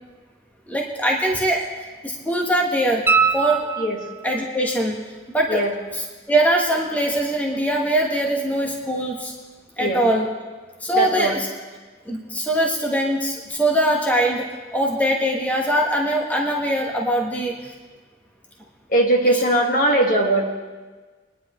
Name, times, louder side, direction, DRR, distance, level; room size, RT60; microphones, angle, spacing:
voice 1, 0.7-1.7 2.0-3.0 3.3-3.7 4.2-5.0 5.3-5.6 5.9-9.3 9.8-10.3 10.8-11.5 12.1-14.5 14.7-17.7 19.3-19.4, right 1 dB, 10° left, -1 dB, 1.2 m, -22 dB
sound 1, 3.1-4.4 7.2-7.3, right 5 dB, 10° right, 0.5 m, -22 dB
voice 2, 10.9-11.4 18.9-20.5, right 1 dB, 50° left, 1 dB, 1.7 m, -19 dB
23.5 x 10.0 x 3.1 m, 1.3 s
head